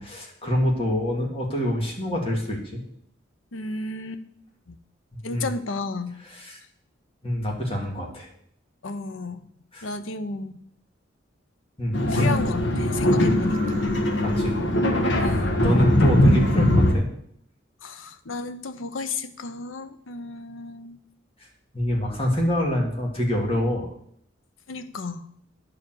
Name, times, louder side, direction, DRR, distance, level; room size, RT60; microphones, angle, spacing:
voice 1, 0.0-2.8 5.3-5.5 6.4-6.6 7.2-8.3 9.7-9.9 11.8-12.3 14.2-14.6 15.5-17.1 21.7-23.9, left 1 dB, 30° left, 0 dB, 2.4 m, -26 dB
voice 2, 3.5-4.2 4.7-4.8 5.2-6.1 8.8-9.4 9.8-10.5 12.1-13.9 15.2-15.6 17.8-21.0 24.7-25.3, left 3 dB, 80° left, 11 dB, 0.8 m, -33 dB
sound 1, 11.9-16.9, left 1 dB, 65° left, 1.5 m, -20 dB
10.0 x 4.9 x 7.7 m, 0.68 s
head